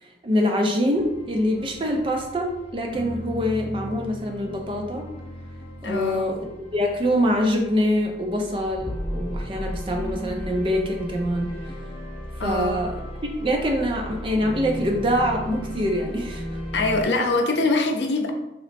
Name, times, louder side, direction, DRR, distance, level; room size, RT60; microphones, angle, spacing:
voice 1, 0.0-5.1 5.8-11.5 12.4-13.0 13.4-16.6, equal, 30° right, 2 dB, 0.4 m, -24 dB
sound 1, 0.9-17.1, equal, 35° left, 0.5 m, -35 dB
voice 2, 5.8-6.3 12.4-12.9 16.7-18.3, left 2 dB, 85° left, 4 dB, 0.5 m, -23 dB
3.1 x 2.0 x 4.1 m, 0.90 s
head